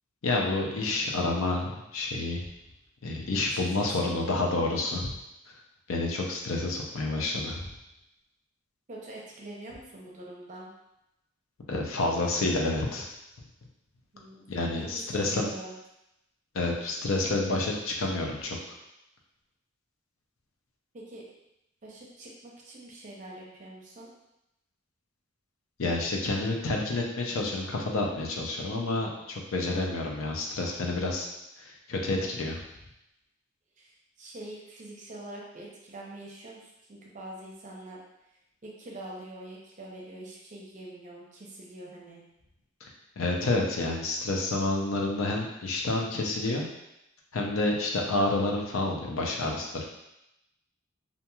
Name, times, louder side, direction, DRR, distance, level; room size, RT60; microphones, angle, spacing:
voice 1, 0.2-2.4 3.0-5.1 5.9-7.7 11.7-13.1 14.5-15.5 16.5-18.6 25.8-31.3 31.6-32.6 42.8-42.9 43.2-46.7 47.3-49.7, left 2 dB, 90° left, 0 dB, 0.5 m, -29 dB
voice 2, 3.8-4.4 8.9-10.7 14.1-14.5 15.1-15.8 20.9-21.2 21.8-24.1 33.8-33.9 34.2-38.0 38.6-42.2, right 1 dB, 40° right, -3 dB, 0.6 m, -44 dB
2.9 x 2.5 x 2.3 m, 0.87 s
head